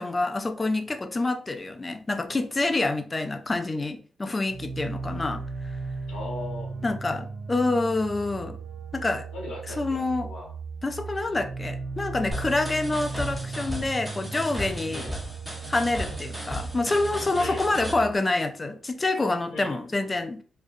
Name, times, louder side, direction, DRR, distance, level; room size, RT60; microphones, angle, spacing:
voice 1, 0.0-5.4 6.8-8.6 8.9-9.3 9.8-10.3 10.8-15.1 15.7-20.4, left 2 dB, 30° left, 0.4 m, -27 dB
sound 1, 4.5-18.2, right 4 dB, 90° right, 0.4 m, -37 dB
voice 2, 6.1-6.7 9.3-10.5 14.9-15.2 17.3-17.6 19.5-19.8, left 2 dB, 85° left, 1.0 m, -38 dB
sound 2, 12.3-17.9, equal, 5° right, 0.7 m, -36 dB
2.3 x 2.1 x 2.5 m
supercardioid pair, 50°, 0 cm